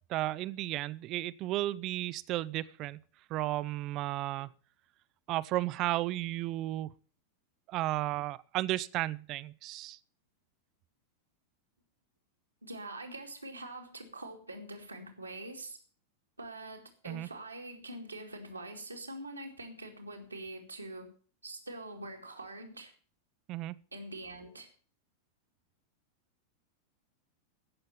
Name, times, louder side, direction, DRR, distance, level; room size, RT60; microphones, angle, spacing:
voice 1, 0.1-3.0 3.3-4.5 5.3-6.9 7.7-10.0 17.1-17.3 23.5-23.8, right 16 dB, 40° right, 0.5 m, -33 dB
voice 2, 12.6-15.8 16.4-21.1 21.4-22.9 23.9-24.7, right 2 dB, 85° right, 2.5 m, -44 dB
15.5 x 6.7 x 6.9 m
figure-of-eight pair, 90°, 0 cm